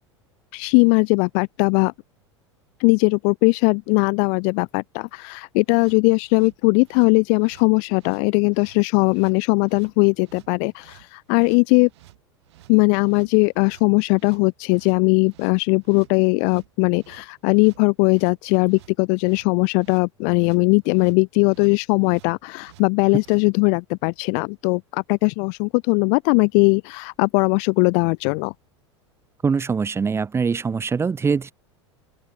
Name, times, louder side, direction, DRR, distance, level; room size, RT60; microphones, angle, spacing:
voice 1, 0.5-1.9 2.8-11.9 12.7-28.5, left 40 dB or more, 55° left, 0.7 m, -19 dB
Basic Beat, 5.6-23.4, right 17 dB, 65° right, 6.9 m, -52 dB
voice 2, 29.4-31.5, right 5 dB, 15° right, 0.7 m, -23 dB
open air
hypercardioid pair, 85°, 15 cm